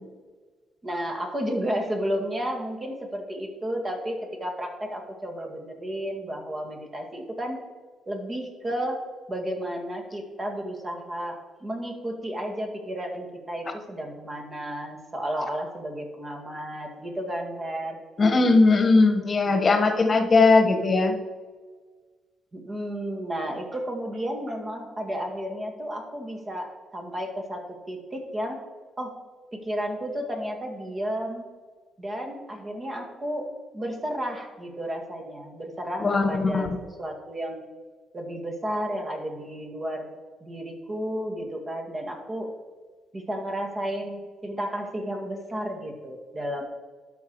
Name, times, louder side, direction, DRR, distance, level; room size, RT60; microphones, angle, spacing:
voice 1, 0.8-7.6 8.1-9.0 9.3-18.0 19.5-19.6 22.5-28.6 29.0-29.1 29.5-31.5 32.0-37.7 38.1-40.1 40.4-42.5 43.1-46.7, equal, 30° right, 2 dB, 2.0 m, -32 dB
voice 2, 18.2-21.1 36.0-36.7, left 3 dB, 35° left, 7 dB, 1.3 m, -19 dB
11.5 x 5.9 x 4.7 m, 1.4 s
cardioid pair, 90°, 0 cm